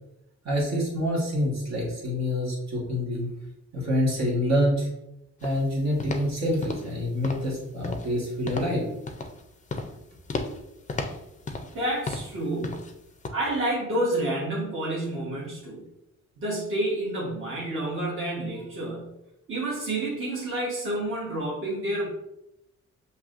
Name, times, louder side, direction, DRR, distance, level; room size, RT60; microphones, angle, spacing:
voice 1, 0.4-3.3 3.7-4.9 5.4-8.9, equal, 60° right, -4 dB, 1.4 m, -26 dB
sound 1, 5.4-5.6 6.0-6.3 6.6-7.0 7.2-7.5 7.8-8.2 8.5-8.8 9.1-9.4 9.7-10.0 10.3-10.6 10.9-11.8 12.1-12.4 12.6-12.9 13.2-13.3, left 3 dB, 25° left, 0.4 m, -33 dB
voice 2, 11.7-12.9 13.3-15.8 16.4-19.1 19.5-22.1, right 1 dB, 45° right, -5 dB, 1.2 m, -29 dB
7.1 x 2.8 x 2.5 m, 0.86 s
wide cardioid pair, 170°, 30 cm